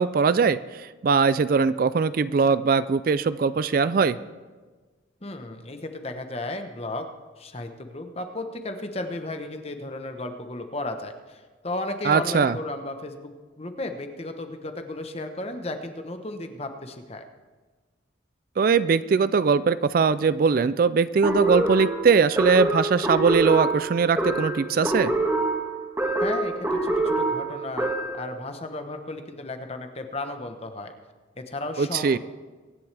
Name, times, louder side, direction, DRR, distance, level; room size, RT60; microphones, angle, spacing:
voice 1, 0.0-4.2 12.0-12.6 18.6-25.1 31.8-32.2, right 5 dB, 50° right, 15 dB, 0.3 m, -21 dB
voice 2, 5.2-7.1 7.4-17.3 26.2-30.9 31.4-32.2, left 2 dB, 30° left, 6 dB, 1.0 m, -34 dB
sound 1, 21.2-28.3, right 2 dB, 15° right, 1.9 m, -25 dB
23.5 x 10.5 x 3.4 m, 1.4 s
head